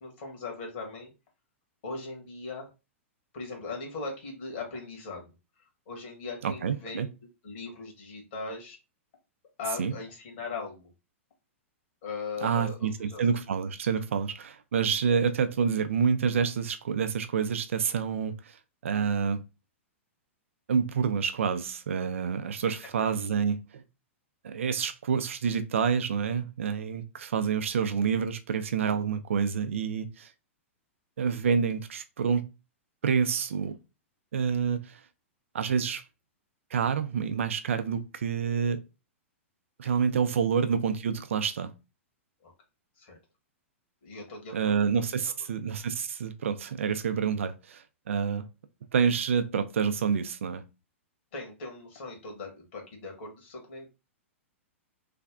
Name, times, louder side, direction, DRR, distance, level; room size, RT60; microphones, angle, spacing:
voice 1, 0.0-1.1 1.8-2.7 3.3-5.3 5.9-7.1 7.4-8.8 9.6-10.9 12.0-13.2 22.6-22.7 40.3-40.4 42.4-42.5 43.0-43.2 44.0-44.8 51.3-53.9, left 4 dB, 55° left, 1.6 m, -39 dB
voice 2, 6.4-7.1 9.8-9.9 12.4-18.6 18.8-19.4 20.7-23.8 24.4-30.3 31.2-32.4 33.0-33.8 34.3-35.0 35.5-36.0 36.7-38.8 39.8-41.7 44.5-48.4 48.9-50.6, right 6 dB, 70° right, 0.5 m, -28 dB
3.3 x 2.3 x 3.6 m
figure-of-eight pair, 105°, 7 cm